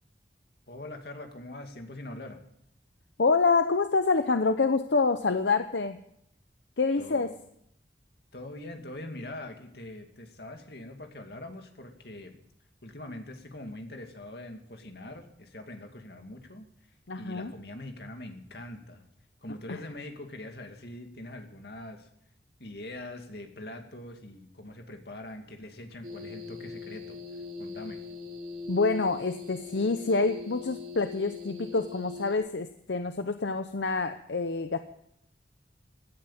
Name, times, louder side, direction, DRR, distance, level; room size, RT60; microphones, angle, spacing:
voice 1, 0.7-2.4 7.0-7.3 8.3-12.4 12.8-16.7 17.2-19.1 19.4-22.1 22.6-27.2 27.6-28.0, left 1 dB, 65° left, 5 dB, 2.3 m, -43 dB
voice 2, 3.2-6.0 6.8-7.3 17.1-17.5 19.7-19.8 28.7-34.8, left 4 dB, 85° left, 9 dB, 0.8 m, -27 dB
sound 1, 26.0-32.3, left 3 dB, 50° right, 2.8 m, -41 dB
17.0 x 10.5 x 7.4 m, 0.73 s
head